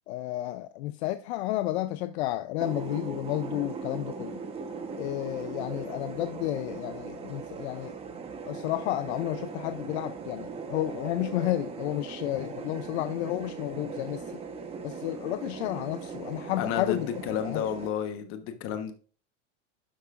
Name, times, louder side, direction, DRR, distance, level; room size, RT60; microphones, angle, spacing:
voice 1, 0.1-4.4 5.0-7.9 8.4-14.4 14.8-17.1 17.4-17.6, left 15 dB, 60° left, 0.6 m, -32 dB
sound 1, 2.6-17.9, right 5 dB, 15° right, 1.0 m, -39 dB
voice 2, 16.6-18.9, left 9 dB, 35° left, 1.1 m, -31 dB
11.5 x 8.1 x 2.5 m
supercardioid pair, 155°, 36 cm